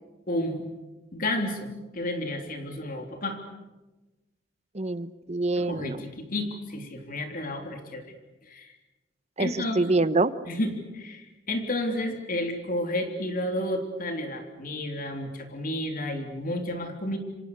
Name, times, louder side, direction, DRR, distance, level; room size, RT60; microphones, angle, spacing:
voice 1, 0.3-0.6 1.1-3.4 5.5-8.0 8.5-8.7 9.4-9.8 10.4-17.2, left 1 dB, 50° left, 4 dB, 3.4 m, -31 dB
voice 2, 4.7-6.0 9.4-10.3, right 2 dB, 35° right, 13 dB, 1.0 m, -25 dB
28.0 x 25.0 x 6.7 m, 1.1 s
head